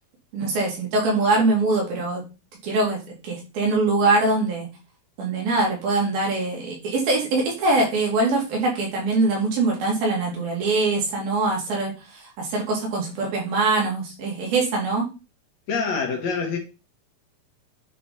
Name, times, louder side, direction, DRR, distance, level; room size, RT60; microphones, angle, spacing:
voice 1, 0.3-2.2 2.6-3.0 3.3-4.7 5.2-15.1, right 3 dB, 90° right, 4.5 m, -23 dB
voice 2, 15.7-16.6, left 5 dB, 60° left, 2.4 m, -25 dB
9.8 x 4.0 x 4.4 m
omnidirectional pair, 4.1 m